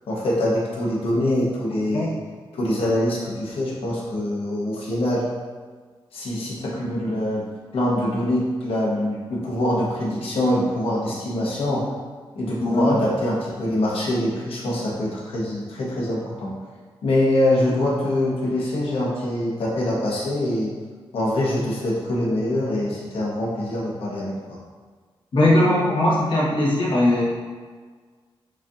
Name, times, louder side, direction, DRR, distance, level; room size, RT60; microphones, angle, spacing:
voice 1, 0.1-2.2 2.5-5.3 6.1-7.4 7.7-11.9 12.3-16.5 17.0-20.7 21.1-24.6, left 1 dB, 80° left, -4 dB, 1.1 m, -24 dB
voice 2, 12.6-12.9 25.3-27.2, left 1 dB, 65° left, -6 dB, 1.3 m, -19 dB
6.2 x 2.8 x 2.5 m, 1.5 s
wide cardioid pair, 110°, 9 cm